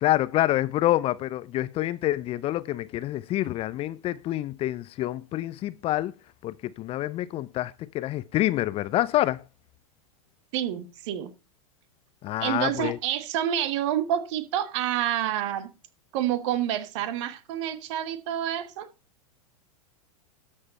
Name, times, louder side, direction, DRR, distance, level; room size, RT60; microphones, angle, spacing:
voice 1, 0.0-6.1 6.4-9.4 12.2-13.0, left 14 dB, 30° left, 0.6 m, -27 dB
voice 2, 10.5-11.3 12.4-15.7 16.1-18.9, right 11 dB, 55° right, 1.6 m, -28 dB
13.0 x 6.6 x 4.1 m
figure-of-eight pair, 100°, 19 cm